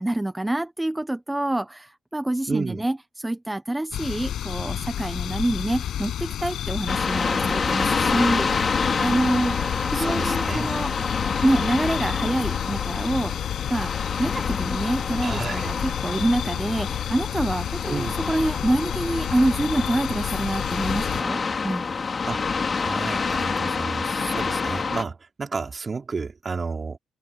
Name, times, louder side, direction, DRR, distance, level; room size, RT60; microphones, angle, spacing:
voice 1, 0.0-11.2 11.4-13.9 14.2-21.9, right 1 dB, 10° right, 0.9 m, -26 dB
voice 2, 2.5-2.8 9.9-10.7 15.2-15.7 17.9-18.1 22.2-22.4 22.7-27.0, right 4 dB, 35° right, 3.7 m, -31 dB
sound 1, 3.9-21.2, left 10 dB, 70° left, 6.6 m, -30 dB
sound 2, 6.9-25.0, left 5 dB, 35° left, 3.0 m, -28 dB
cardioid pair, 90°, 0 cm